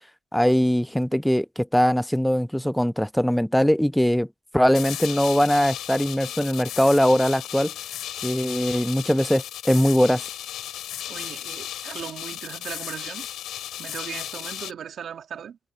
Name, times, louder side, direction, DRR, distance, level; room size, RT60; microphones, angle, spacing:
voice 1, 0.3-4.3 4.5-7.7 8.2-10.2, equal, 5° left, 0.4 m, -21 dB
sound 1, 4.7-14.7, left 12 dB, 80° left, 2.8 m, -35 dB
voice 2, 11.1-13.3 13.8-15.6, right 8 dB, 60° right, 2.2 m, -37 dB
cardioid pair, 90°, 0 cm